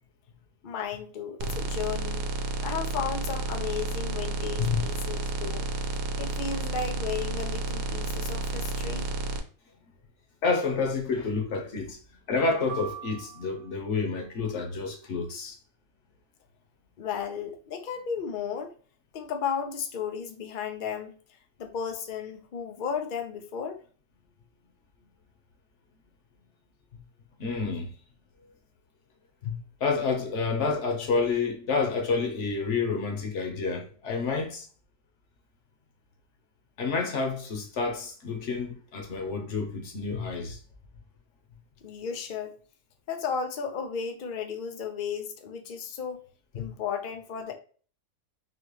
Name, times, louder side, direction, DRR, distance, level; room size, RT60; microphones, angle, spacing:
voice 1, 0.6-2.3 2.6-5.7 6.2-9.1 17.0-18.7 19.1-21.2 21.6-23.8 41.8-42.6 43.1-46.3 46.5-47.5, left 6 dB, 90° left, 0.4 m, -34 dB
sound 1, 1.4-9.4, right 3 dB, 80° right, 1.2 m, -31 dB
voice 2, 10.4-12.0 12.3-15.6 27.4-27.9 29.4-34.7 36.8-40.6 46.5-46.7, left 4 dB, 55° left, 1.1 m, -29 dB
sound 2, 12.7-14.0, right 9 dB, 65° right, 0.5 m, -41 dB
4.0 x 2.9 x 3.1 m
omnidirectional pair, 1.7 m